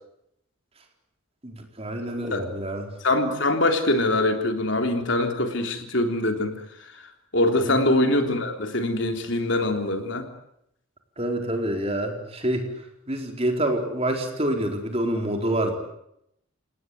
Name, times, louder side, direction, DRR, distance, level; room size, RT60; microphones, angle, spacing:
voice 1, 1.4-2.9 7.6-7.8 11.2-12.7 13.1-15.8, right 1 dB, 30° right, 3 dB, 4.4 m, -27 dB
voice 2, 3.0-6.6 6.9-7.0 7.3-10.3, left 1 dB, 60° left, 5 dB, 3.5 m, -23 dB
29.0 x 18.5 x 9.4 m, 0.77 s
head